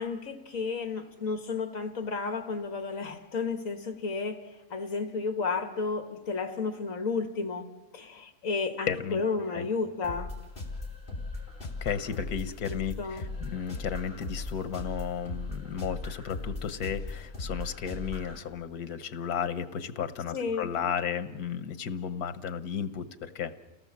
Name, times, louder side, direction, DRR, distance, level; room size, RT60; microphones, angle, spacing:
voice 1, 0.0-4.4 4.7-7.7 7.9-10.3 12.6-13.3 20.3-20.7, left 4 dB, 60° left, 7 dB, 2.1 m, -32 dB
voice 2, 8.9-9.2 9.5-9.7 11.6-23.5, left 8 dB, 85° left, 12 dB, 1.5 m, -34 dB
sound 1, 10.0-18.4, left 3 dB, 30° left, 3.9 m, -38 dB
29.5 x 18.0 x 7.4 m, 1.1 s
omnidirectional pair, 1.6 m